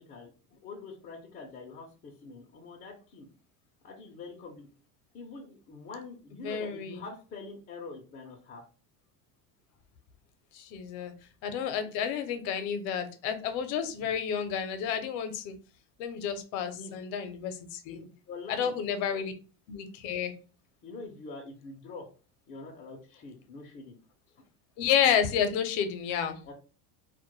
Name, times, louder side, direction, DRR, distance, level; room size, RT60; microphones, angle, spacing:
voice 1, 0.0-3.3 3.8-4.7 5.1-8.6 11.8-11.9 14.0-14.1 16.7-17.0 17.9-18.8 19.0-19.2 20.8-22.1 22.5-24.0 24.3-24.4 26.4-26.5, left 3 dB, 25° left, 0 dB, 0.4 m, -45 dB
voice 2, 6.4-7.0 10.5-11.1 11.4-15.6 16.0-18.0 18.6-19.3 19.7-20.3 24.8-26.5, left 8 dB, 75° left, 9 dB, 0.6 m, -30 dB
2.2 x 2.1 x 3.0 m, 0.35 s
cardioid pair, 140°, 43 cm